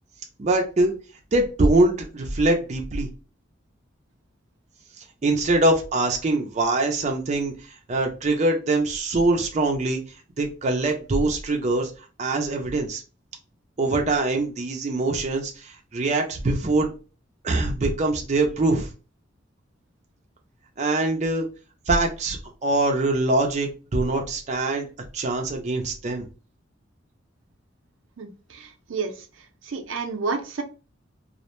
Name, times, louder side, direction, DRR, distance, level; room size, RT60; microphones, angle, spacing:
voice 1, 0.4-0.9 1.3-3.1 5.2-10.0 10.4-11.9 12.2-13.0 13.8-16.9 17.4-18.9 20.8-21.5 21.9-22.4 22.6-24.9 25.1-26.3, right 2 dB, 35° right, 2 dB, 0.4 m, -23 dB
voice 2, 28.2-29.1 29.7-30.6, right 4 dB, 90° right, 4 dB, 0.5 m, -30 dB
2.4 x 2.1 x 2.9 m, 0.33 s
head